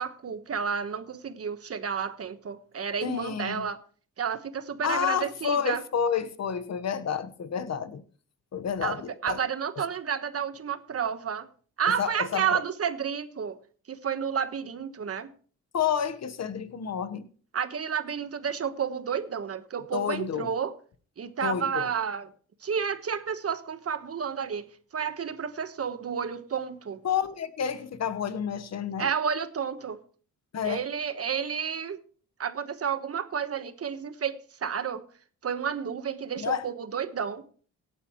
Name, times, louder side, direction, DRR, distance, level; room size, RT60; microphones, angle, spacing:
voice 1, 0.0-3.8 4.2-5.8 8.8-11.5 11.8-13.6 13.9-15.3 17.5-20.7 21.2-22.3 22.6-24.7 24.9-27.0 29.0-30.0 30.6-32.0 32.4-35.0 35.4-37.4, right 7 dB, 50° right, 11 dB, 1.3 m, -31 dB
voice 2, 3.0-3.6 4.8-8.0 8.5-9.4 12.0-12.6 15.7-17.3 19.9-20.5 21.4-21.9 27.0-29.1 30.5-30.8 36.4-36.6, left 8 dB, 55° left, 11 dB, 1.3 m, -30 dB
17.5 x 9.3 x 3.1 m, 0.43 s
cardioid pair, 75°, 31 cm